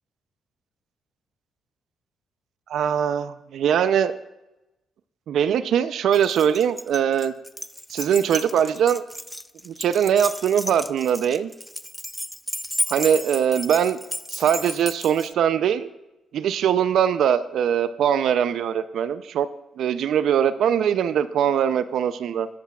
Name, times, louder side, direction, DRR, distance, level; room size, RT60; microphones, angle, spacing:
voice 1, 2.7-4.1 5.3-7.3 7.9-9.0 9.6-11.5 12.9-14.0 14.3-15.9 16.3-19.5 19.8-22.5, right 8 dB, 70° right, 13 dB, 0.5 m, -21 dB
Keys jangling, 6.1-15.3, equal, ahead, 0.4 m, -33 dB
20.0 x 8.1 x 2.4 m, 0.97 s
cardioid pair, 90°, 0 cm